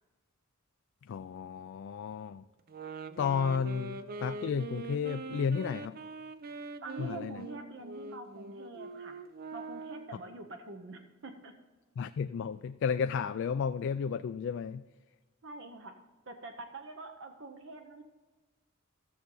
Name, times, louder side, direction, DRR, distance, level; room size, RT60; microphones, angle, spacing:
voice 1, 1.1-2.4 3.2-6.0 7.0-7.4 12.0-14.8, left 6 dB, 60° left, 10 dB, 0.3 m, -33 dB
sound 1, 2.7-10.2, right 3 dB, 45° right, 0.5 m, -43 dB
voice 2, 6.8-9.2 9.5-11.5 15.4-15.9 16.3-18.0, right 2 dB, 60° right, 5 dB, 0.9 m, -45 dB
14.5 x 6.8 x 3.9 m, 1.3 s
head